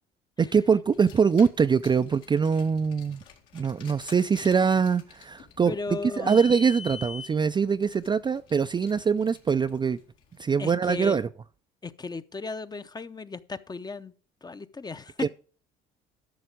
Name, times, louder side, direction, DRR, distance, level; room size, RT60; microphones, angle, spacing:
voice 1, 0.4-3.2 3.5-5.7 6.2-10.0 10.4-11.3 15.2-15.3, right 6 dB, 20° right, 0.4 m, -23 dB
Car, 0.9-10.4, left 6 dB, 75° left, 2.2 m, -47 dB
voice 2, 5.7-6.4 10.6-11.2 11.8-14.1 14.4-15.3, left 4 dB, 20° left, 0.6 m, -35 dB
12.5 x 6.0 x 5.0 m
supercardioid pair, 80°, 21 cm